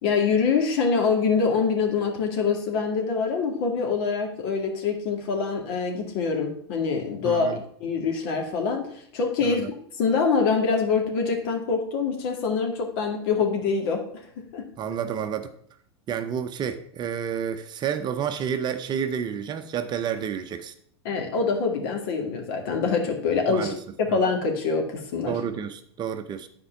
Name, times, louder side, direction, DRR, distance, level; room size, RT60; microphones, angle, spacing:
voice 1, 0.0-8.8 9.1-14.7 21.0-23.7 24.0-25.3, left 5 dB, 60° left, 2.3 m, -25 dB
voice 2, 7.2-7.6 9.4-9.7 14.8-15.5 16.1-20.7 23.5-23.8 24.1-24.2 25.3-26.5, right 8 dB, 30° right, 0.8 m, -30 dB
10.0 x 4.6 x 5.9 m
hypercardioid pair, 95°, 14 cm